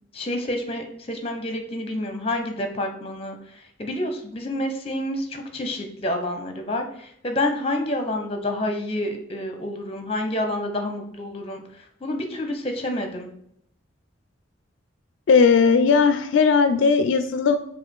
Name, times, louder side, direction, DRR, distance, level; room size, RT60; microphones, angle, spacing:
voice 1, 0.1-3.4 3.8-11.6 12.0-13.3, left 1 dB, 30° left, 5 dB, 0.7 m, -28 dB
voice 2, 15.3-17.6, left 5 dB, 80° left, 10 dB, 0.3 m, -17 dB
4.8 x 2.4 x 4.5 m, 0.71 s
head